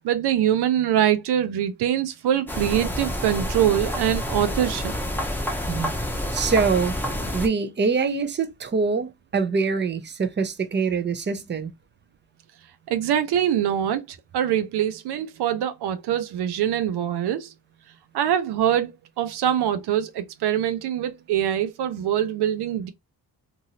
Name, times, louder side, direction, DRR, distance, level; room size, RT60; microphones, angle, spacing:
voice 1, 0.0-4.9 12.9-17.5 18.1-18.9 19.2-22.9, right 10 dB, 80° right, 0.6 m, -24 dB
sound 1, 2.5-7.5, left 1 dB, 5° left, 0.8 m, -28 dB
voice 2, 5.7-6.0 6.3-6.9 7.3-11.7, right 5 dB, 25° right, 0.7 m, -24 dB
2.6 x 2.6 x 2.9 m
cardioid pair, 60°, 39 cm